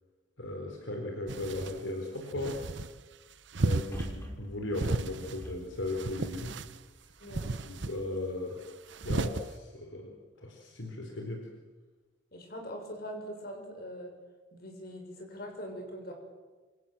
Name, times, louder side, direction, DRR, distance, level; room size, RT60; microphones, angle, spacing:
voice 1, 0.4-2.6 3.6-6.6 7.6-8.6 9.0-11.5, left 2 dB, 70° left, 1 dB, 4.4 m, -37 dB
sound 1, 1.3-1.8 2.3-2.9 3.5-4.1 4.7-5.4 5.9-6.8 7.3-7.9 8.9-9.4, right 3 dB, 60° right, 0.9 m, -33 dB
sound 2, 3.9-7.2 7.7-7.8, equal, 10° left, 4.8 m, -45 dB
voice 2, 7.2-7.5 12.3-14.1 14.5-16.1, equal, 50° left, 3 dB, 6.7 m, -42 dB
27.5 x 26.5 x 7.8 m, 1.3 s
head